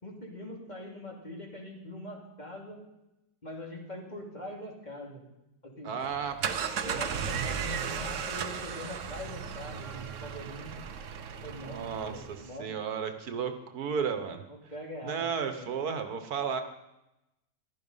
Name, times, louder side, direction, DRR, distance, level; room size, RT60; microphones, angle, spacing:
voice 1, 0.0-2.8 3.4-5.2 5.8-5.9 6.8-10.7 11.4-12.7 14.5-15.6, left 1 dB, 25° left, 0 dB, 2.8 m, -43 dB
voice 2, 5.8-7.0 11.6-12.2 12.6-14.4 15.0-16.6, right 6 dB, 75° right, 9 dB, 1.6 m, -33 dB
sound 1, 6.0-6.1 6.4-6.5 6.9-7.4 7.8-8.4 8.7-9.2, left 1 dB, 45° left, 3.4 m, -50 dB
sound 2, 6.1-12.5, right 7 dB, 55° right, 1.1 m, -35 dB
14.5 x 12.0 x 5.5 m, 0.91 s
omnidirectional pair, 1.7 m